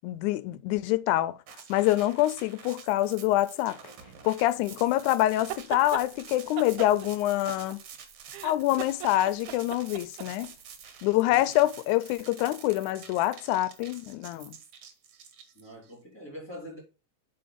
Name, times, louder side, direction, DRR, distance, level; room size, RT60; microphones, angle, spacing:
voice 1, 0.0-1.4 1.7-3.8 4.2-7.8 8.4-10.5 11.0-14.6, left 15 dB, 90° left, 2.0 m, -26 dB
sound 1, 1.5-15.9, right 7 dB, 65° right, 2.2 m, -48 dB
sound 2, 5.3-6.1 6.6-8.0 8.3-10.5, right 13 dB, 85° right, 2.0 m, -38 dB
voice 2, 15.6-16.8, left 1 dB, 10° left, 3.8 m, -43 dB
7.8 x 4.5 x 5.0 m
omnidirectional pair, 3.4 m